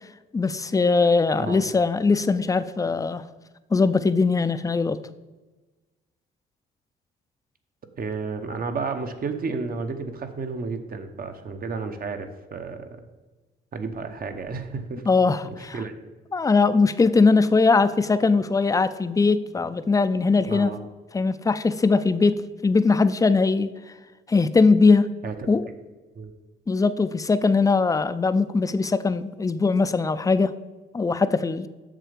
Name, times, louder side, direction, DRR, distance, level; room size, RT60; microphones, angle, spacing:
voice 1, 0.3-3.2 3.7-5.0 15.1-15.8 16.3-20.7 21.1-22.3 22.6-23.7 24.3-25.1 25.5-25.6 26.7-30.5 30.9-31.7, left 4 dB, 15° left, 13 dB, 0.4 m, -20 dB
voice 2, 8.0-13.0 13.7-15.0 15.7-15.9 20.5-20.8 25.2-25.5 26.1-26.3, right 4 dB, 45° right, 7 dB, 1.0 m, -32 dB
7.4 x 6.5 x 5.1 m, 1.2 s
cardioid pair, 90°, 20 cm